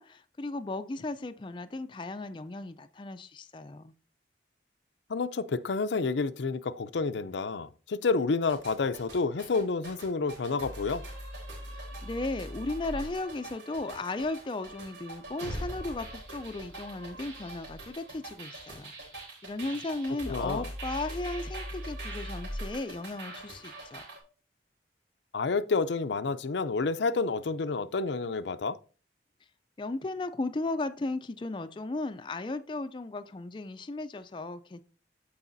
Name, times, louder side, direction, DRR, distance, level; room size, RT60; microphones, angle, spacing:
voice 1, 0.0-3.9 12.0-24.0 29.8-34.8, left 2 dB, 25° left, 0.4 m, -36 dB
voice 2, 5.1-11.0 20.3-20.7 25.3-28.8, left 4 dB, 80° left, 0.5 m, -29 dB
sound 1, 8.5-24.2, right 1 dB, 80° right, 3.5 m, -41 dB
14.0 x 4.8 x 2.6 m
head